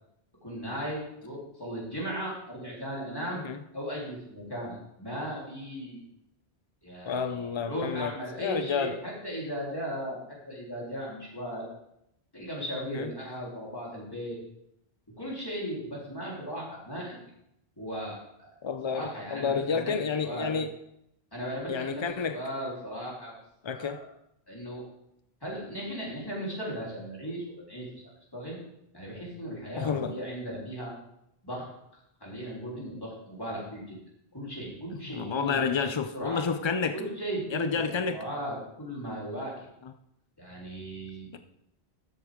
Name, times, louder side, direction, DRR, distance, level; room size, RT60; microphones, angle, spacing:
voice 1, 0.4-3.4 3.7-6.0 6.8-10.2 10.5-11.7 12.3-14.4 15.2-17.2 17.8-18.5 18.8-19.9 20.2-20.6 21.3-23.3 23.7-24.1 24.5-24.8 25.4-27.9 28.3-28.6 28.9-30.9 31.4-31.7 32.2-34.0 34.3-35.9 36.1-36.4 36.9-39.5 40.4-41.3, equal, 20° left, 3.5 m, -37 dB
voice 2, 7.0-8.1 8.4-9.0 12.9-13.1 18.6-20.7 21.7-22.4 23.6-24.0 29.8-30.2 35.1-37.0 37.5-38.2, left 6 dB, 50° left, 0.3 m, -30 dB
13.5 x 7.7 x 3.6 m
omnidirectional pair, 1.1 m